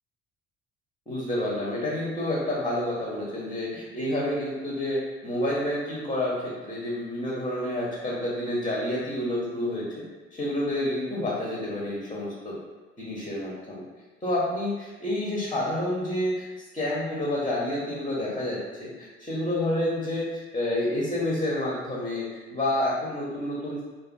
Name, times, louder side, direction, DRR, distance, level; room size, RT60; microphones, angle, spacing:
voice 1, 1.1-10.0 10.3-12.6 13.0-13.8 14.2-16.5 16.7-23.9, left 1 dB, 15° left, -5 dB, 0.6 m, -29 dB
2.4 x 2.2 x 2.5 m, 1.2 s
hypercardioid pair, 55°, 35 cm